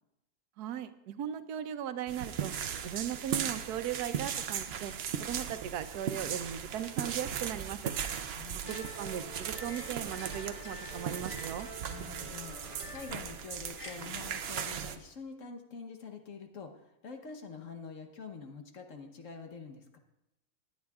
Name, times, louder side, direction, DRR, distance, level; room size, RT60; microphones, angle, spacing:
voice 1, 0.6-2.5 2.8-4.9 5.2-7.9 8.7-11.7, right 9 dB, 90° right, 11 dB, 1.2 m, -38 dB
sound 1, 2.1-15.0, right 8 dB, 60° right, 0.7 m, -38 dB
voice 2, 8.3-8.8 11.9-20.0, left 5 dB, 60° left, 5 dB, 1.3 m, -46 dB
sound 2, 8.6-13.9, left 1 dB, 35° left, 1.8 m, -47 dB
18.5 x 9.5 x 2.4 m, 0.90 s
omnidirectional pair, 1.6 m